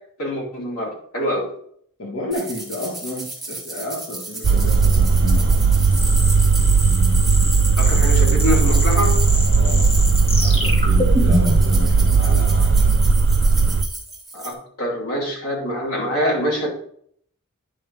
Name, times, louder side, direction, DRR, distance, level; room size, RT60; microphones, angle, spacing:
voice 1, 0.2-1.5 7.8-9.2 14.3-16.7, equal, 85° left, -2 dB, 3.0 m, -25 dB
voice 2, 2.0-5.6 9.5-9.9 10.4-12.7, left 1 dB, 60° left, -4 dB, 1.7 m, -31 dB
sound 1, 2.3-14.5, right 2 dB, ahead, 2.1 m, -34 dB
sound 2, 4.4-13.8, right 4 dB, 55° right, 0.4 m, -16 dB
sound 3, 5.9-11.7, left 1 dB, 25° left, 2.3 m, -26 dB
10.5 x 5.7 x 3.3 m, 0.64 s
head